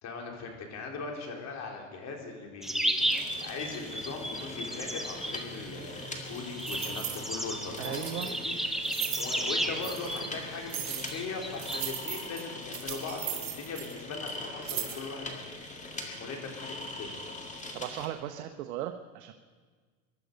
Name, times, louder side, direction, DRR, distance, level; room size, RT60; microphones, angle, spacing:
voice 1, 0.0-15.3 15.8-17.1, left 4 dB, 40° left, 1 dB, 3.7 m, -40 dB
sound 1, 2.6-11.8, right 1 dB, ahead, 1.0 m, -34 dB
sound 2, 3.0-18.1, left 2 dB, 15° left, 2.2 m, -42 dB
sound 3, 6.3-7.2 7.8-8.3 8.8-9.3 9.8-10.2 10.7-11.2 11.6-14.0 14.3-14.4 14.6-15.0, right 10 dB, 40° right, 3.5 m, -37 dB
voice 2, 7.8-8.3 17.7-19.3, right 12 dB, 80° right, 7 dB, 1.0 m, -37 dB
23.5 x 12.0 x 5.3 m, 1.5 s
supercardioid pair, 120°, 41 cm